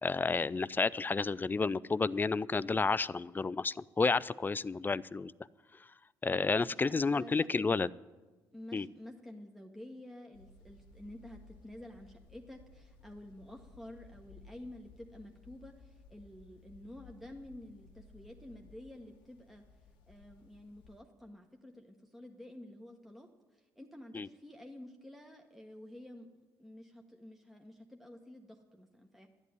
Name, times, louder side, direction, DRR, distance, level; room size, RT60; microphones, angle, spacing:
voice 1, 0.0-5.3 6.2-7.9 8.7-8.9 24.1-24.3, left 4 dB, 20° left, 20 dB, 0.4 m, -31 dB
voice 2, 6.5-7.5 8.5-19.6 20.1-26.3 26.6-29.3, left 1 dB, ahead, 2 dB, 1.3 m, -50 dB
sound 1, 10.3-21.0, left 4 dB, 85° left, 1.0 m, -58 dB
12.0 x 8.2 x 9.6 m, 1.2 s
supercardioid pair, 70°, 9 cm